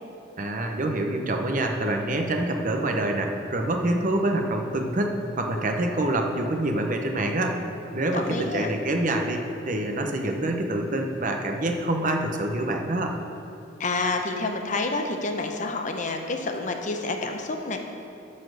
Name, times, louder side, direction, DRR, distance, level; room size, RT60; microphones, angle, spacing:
voice 1, 0.4-7.6 7.9-13.2, right 1 dB, 40° right, 3 dB, 0.8 m, -26 dB
voice 2, 8.1-8.7 13.8-17.8, left 3 dB, 40° left, 4 dB, 0.7 m, -28 dB
11.5 x 4.3 x 6.3 m, 2.9 s
head